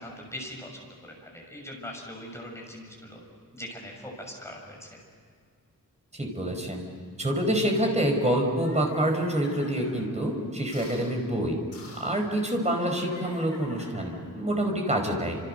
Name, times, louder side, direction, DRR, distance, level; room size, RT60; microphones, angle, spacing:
voice 1, 0.0-3.2 3.5-5.0, left 1 dB, 10° left, 0 dB, 6.7 m, -41 dB
voice 2, 6.1-6.8 7.2-11.6 12.0-15.4, right 1 dB, 20° right, 2 dB, 4.9 m, -27 dB
sound 1, 8.4-10.1 10.7-11.1 11.7-12.2 12.6-14.3, left 3 dB, 45° left, 6.5 m, -42 dB
29.5 x 27.5 x 6.6 m, 2.1 s
wide cardioid pair, 160°, 35 cm